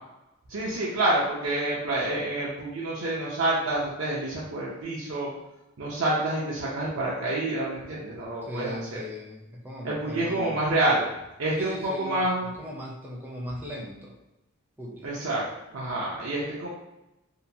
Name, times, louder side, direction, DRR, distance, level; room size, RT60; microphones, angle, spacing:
voice 1, 0.5-5.3 5.8-9.0 9.8-11.1 11.4-12.5 15.0-15.5 15.7-16.7, right 2 dB, 75° right, -5 dB, 0.5 m, -28 dB
voice 2, 8.4-10.5 11.6-14.2 14.8-15.1, equal, 10° right, -3 dB, 0.4 m, -38 dB
2.8 x 2.1 x 2.6 m, 0.94 s
head